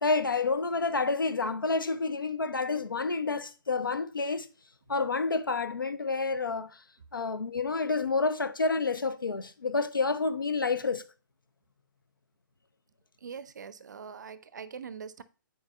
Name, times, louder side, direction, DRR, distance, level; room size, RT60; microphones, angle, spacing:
voice 1, 0.0-4.5 4.9-6.8 7.1-11.0, left 4 dB, 80° left, 0.5 m, -29 dB
voice 2, 13.2-15.2, right 6 dB, 60° right, 0.5 m, -42 dB
9.5 x 4.4 x 2.4 m
figure-of-eight pair, 135°, 11 cm